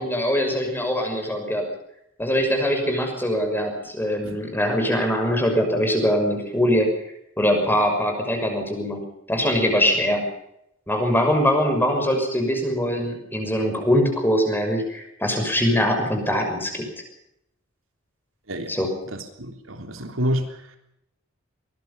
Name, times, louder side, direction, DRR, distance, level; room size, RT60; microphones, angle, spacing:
voice 1, 0.0-1.7 2.2-6.9 7.4-10.2 10.9-16.8 18.7-18.9, equal, 10° left, 4 dB, 6.2 m, -22 dB
voice 2, 19.1-20.5, equal, 85° right, 6 dB, 3.5 m, -28 dB
23.5 x 20.0 x 5.8 m, 0.78 s
head